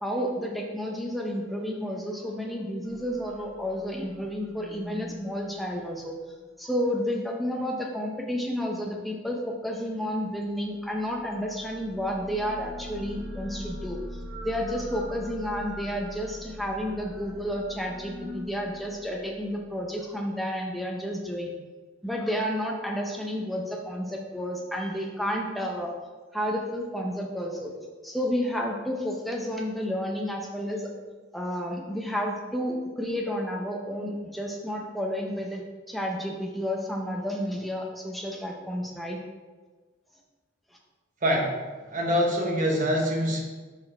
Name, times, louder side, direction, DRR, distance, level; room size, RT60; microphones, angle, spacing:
voice 1, 0.0-6.2 6.6-21.5 22.0-25.9 26.3-27.8 28.0-30.9 31.3-35.6 35.9-39.2, equal, ahead, 0 dB, 0.8 m, -31 dB
sound 1, 2.8-6.4 10.7-19.9, equal, 75° right, 1.1 m, -42 dB
voice 2, 41.2-41.5 41.9-43.4, equal, 40° right, 0 dB, 1.2 m, -24 dB
6.2 x 4.6 x 4.3 m, 1.4 s
head